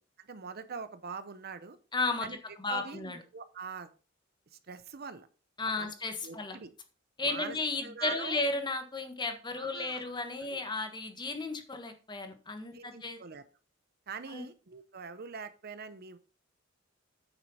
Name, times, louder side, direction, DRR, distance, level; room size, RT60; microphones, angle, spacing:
voice 1, 0.2-1.8 2.2-2.4 2.7-3.9 4.5-5.3 5.7-5.9 6.2-6.7 7.2-7.6 7.8-8.4 9.6-10.2 10.5-10.6 12.7-13.4 14.1-16.2, right 5 dB, 55° right, 12 dB, 0.7 m, -43 dB
voice 2, 1.9-3.2 5.6-6.6 7.2-13.2 14.3-14.4, left 3 dB, 25° left, 6 dB, 1.3 m, -34 dB
9.4 x 6.3 x 4.2 m, 0.36 s
head